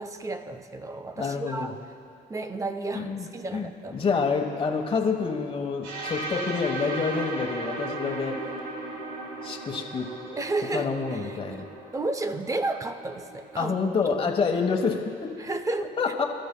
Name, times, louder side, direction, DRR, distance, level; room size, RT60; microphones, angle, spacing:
voice 1, 0.0-1.7 2.3-4.0 10.3-11.7 11.9-13.8 14.6-14.8 15.4-16.0, right 2 dB, 20° right, 9 dB, 0.6 m, -32 dB
voice 2, 1.2-1.7 2.9-8.6 9.4-10.1 10.7-11.7 13.6-15.3 16.0-16.2, left 5 dB, 30° left, 1 dB, 1.3 m, -28 dB
sound 1, 5.8-13.7, right 2 dB, 80° right, 1.8 m, -37 dB
23.5 x 13.0 x 2.3 m, 2.5 s
cardioid pair, 110°, 17 cm